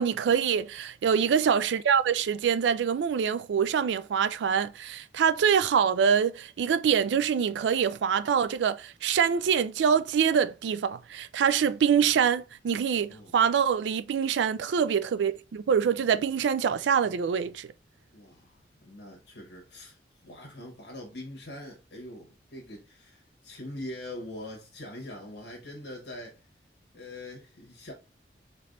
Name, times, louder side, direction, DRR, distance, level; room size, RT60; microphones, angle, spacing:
voice 1, 0.0-17.7, right 7 dB, 85° right, 0.3 m, -25 dB
voice 2, 18.1-20.0 20.2-26.4 26.9-27.9, left 1 dB, 85° left, 1.1 m, -43 dB
4.1 x 3.3 x 2.5 m
head